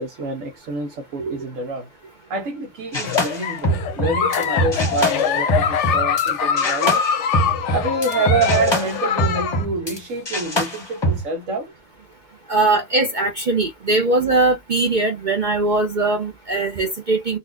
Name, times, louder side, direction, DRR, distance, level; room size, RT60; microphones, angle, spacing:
voice 1, 0.0-1.9 2.3-7.0 7.7-11.7, right 3 dB, 75° right, 1.3 m, -26 dB
Giggle, 2.9-9.6, left 8 dB, 70° left, 0.9 m, -23 dB
sound 1, 2.9-6.3 6.6-10.0 10.3-11.2, equal, 20° left, 0.9 m, -24 dB
voice 2, 12.5-17.4, right 2 dB, 45° right, 0.7 m, -20 dB
4.0 x 2.5 x 2.4 m
omnidirectional pair, 1.4 m